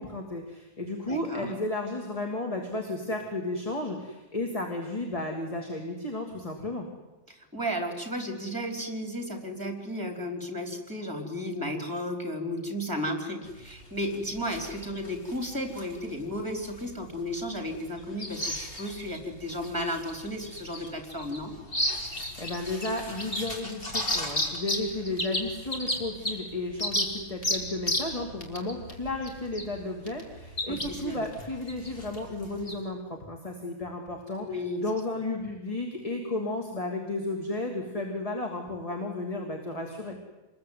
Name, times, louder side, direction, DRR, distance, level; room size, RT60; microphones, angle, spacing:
voice 1, 0.0-6.9 22.2-40.2, left 2 dB, 30° left, 2 dB, 3.0 m, -33 dB
voice 2, 1.1-1.5 7.3-21.5 30.7-31.2 34.4-34.8, equal, 15° right, 5 dB, 4.2 m, -34 dB
sound 1, 13.5-32.7, left 1 dB, 50° left, 4.1 m, -35 dB
27.0 x 21.0 x 9.5 m, 1.0 s
omnidirectional pair, 1.3 m